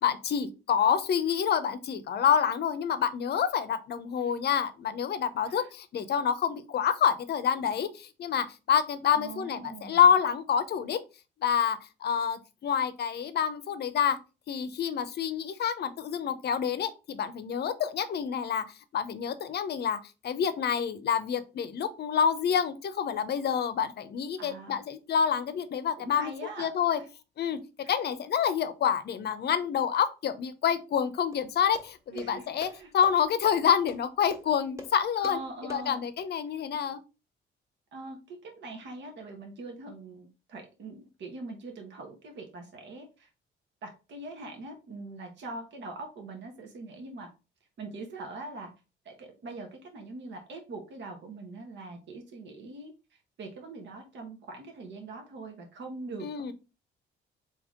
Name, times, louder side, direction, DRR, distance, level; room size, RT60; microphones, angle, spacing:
voice 1, 0.0-11.0 11.4-14.2 14.5-18.6 18.9-20.0 20.2-26.3 26.6-27.0 27.4-27.6 27.9-32.7 32.9-37.0 56.2-56.5, left 8 dB, 55° left, 12 dB, 0.6 m, -27 dB
voice 2, 9.1-10.1 24.4-24.8 26.0-27.1 27.8-28.0 32.1-32.9 35.2-36.0 37.9-43.3 43.8-47.3 47.8-48.7 49.0-56.3, right 3 dB, 65° right, 3 dB, 1.0 m, -42 dB
sound 1, 31.3-36.3, left 2 dB, 15° right, 1.3 m, -48 dB
3.6 x 2.9 x 3.5 m, 0.30 s
cardioid pair, 90°, 20 cm